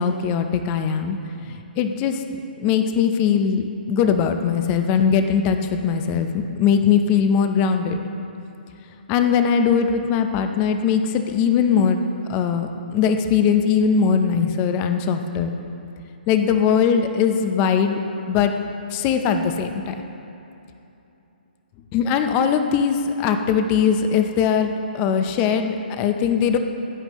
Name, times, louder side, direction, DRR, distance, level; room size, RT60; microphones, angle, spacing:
voice 1, 0.0-8.1 9.1-12.0 12.3-15.5 16.3-18.0 18.3-18.5 18.9-19.9 21.9-26.6, left 7 dB, 25° left, 7 dB, 0.7 m, -20 dB
16.5 x 8.8 x 3.1 m, 2.9 s
hypercardioid pair, 150°, 5 cm